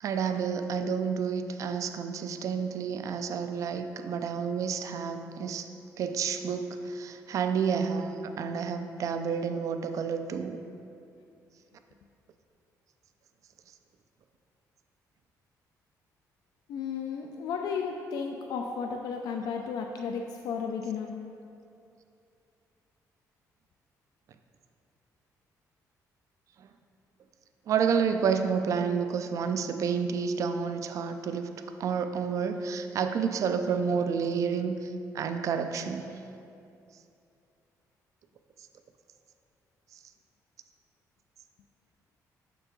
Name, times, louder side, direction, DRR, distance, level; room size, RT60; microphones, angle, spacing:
voice 1, 0.0-5.7 6.0-10.6 26.6-26.7 27.7-31.5 31.8-36.2, right 6 dB, 55° right, 8 dB, 0.3 m, -30 dB
voice 2, 16.7-21.1, left 6 dB, 80° left, 2 dB, 0.4 m, -33 dB
6.6 x 4.6 x 3.8 m, 2.6 s
cardioid pair, 135°, 7 cm